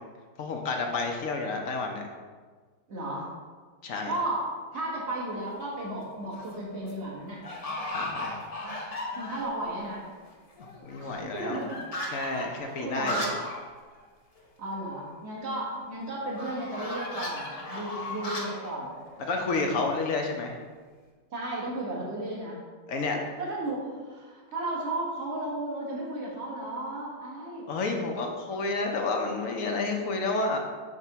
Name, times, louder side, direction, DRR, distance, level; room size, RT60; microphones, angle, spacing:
voice 1, 0.4-2.0 3.8-4.1 7.9-8.4 10.8-11.6 12.1-13.3 19.2-20.6 22.9-23.2 27.7-30.6, left 3 dB, 65° left, 2 dB, 0.9 m, -30 dB
voice 2, 2.9-3.3 4.1-4.5 4.7-7.4 9.1-10.1 11.0-11.8 12.6-13.3 14.6-18.9 19.6-20.0 21.3-22.6 23.1-27.7, right 1 dB, 40° right, -4 dB, 1.6 m, -34 dB
sound 1, 5.1-5.6 6.1-6.6 6.8-6.9 7.4-9.6 10.0-10.1 10.3-13.6 14.0-14.1 14.4-14.5 16.4-20.1, left 1 dB, 35° left, 0.6 m, -36 dB
4.9 x 3.6 x 5.5 m, 1.5 s
omnidirectional pair, 1.8 m